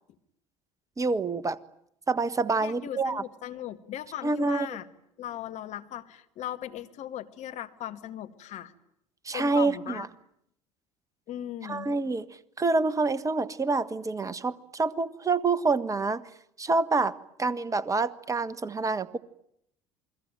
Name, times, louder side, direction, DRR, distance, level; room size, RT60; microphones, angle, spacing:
voice 1, 1.0-1.6 2.1-3.2 4.2-4.7 9.2-10.1 11.6-12.3 12.6-16.2 16.6-19.2, right 3 dB, 20° right, 17 dB, 1.5 m, -27 dB
voice 2, 2.6-4.9 5.2-8.7 9.3-10.1 11.3-11.9, left 12 dB, 50° left, 9 dB, 1.9 m, -38 dB
28.5 x 21.5 x 9.3 m, 0.75 s
figure-of-eight pair, 60°, 16 cm